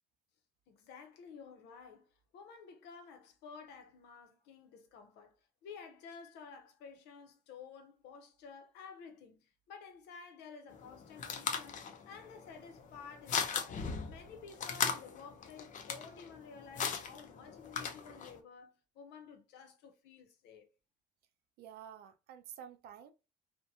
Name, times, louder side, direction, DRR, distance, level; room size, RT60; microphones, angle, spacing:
voice 1, 0.7-2.1 2.3-5.3 5.6-20.7, left 5 dB, 85° left, 0.7 m, -52 dB
sound 1, 10.7-18.4, left 6 dB, 50° left, 0.5 m, -39 dB
voice 2, 21.6-23.1, right 9 dB, 75° right, 0.4 m, -50 dB
2.7 x 2.1 x 2.6 m
cardioid pair, 110°, 17 cm